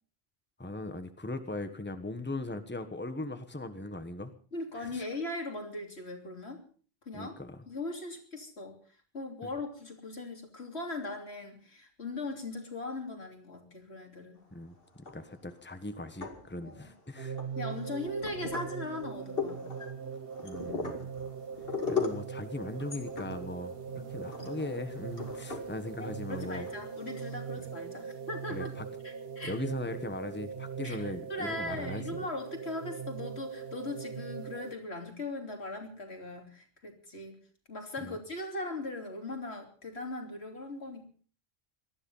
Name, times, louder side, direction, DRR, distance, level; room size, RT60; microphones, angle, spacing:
voice 1, 0.6-4.3 4.8-5.1 7.1-7.7 9.4-9.5 14.5-17.4 20.4-21.1 21.9-26.7 28.5-28.9 29.4-32.0 38.0-38.2, left 2 dB, 10° left, 9 dB, 1.3 m, -39 dB
voice 2, 4.5-6.6 7.0-7.3 7.7-8.7 9.1-14.4 16.6-16.9 17.6-19.6 23.9-24.1 26.0-28.7 29.0-29.5 30.8-31.0 31.3-37.3 37.7-41.1, left 2 dB, 90° left, 3 dB, 3.5 m, -39 dB
sound 1, 14.9-15.5 16.0-16.9 17.4-27.3, left 5 dB, 60° left, 2.6 m, -39 dB
sound 2, 17.2-34.8, right 6 dB, 65° right, 1.4 m, -41 dB
18.5 x 13.0 x 5.6 m, 0.44 s
omnidirectional pair, 1.1 m